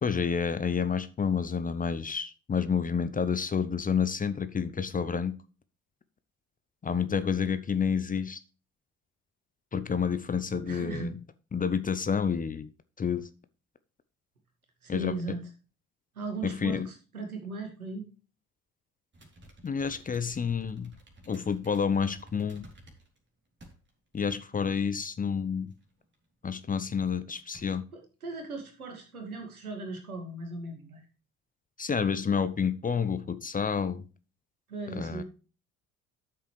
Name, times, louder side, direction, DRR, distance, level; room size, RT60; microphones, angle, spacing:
voice 1, 0.0-5.3 6.8-8.4 9.7-11.1 11.5-12.7 13.0-13.3 14.9-15.4 16.4-16.9 19.6-20.9 21.3-22.7 24.1-25.7 26.4-27.8 31.8-34.0 34.9-35.2, left 6 dB, 20° left, 0.7 m, -29 dB
voice 2, 10.6-11.1 14.8-15.4 16.2-18.1 27.9-31.1 34.7-35.2, right 3 dB, 80° right, 2.1 m, -37 dB
sound 1, 19.1-23.2 23.6-24.2 24.5-24.6 25.7-26.1 26.9-27.1 27.3-27.6, right 1 dB, 25° right, 3.4 m, -53 dB
12.5 x 6.8 x 3.2 m
figure-of-eight pair, 55°, 42 cm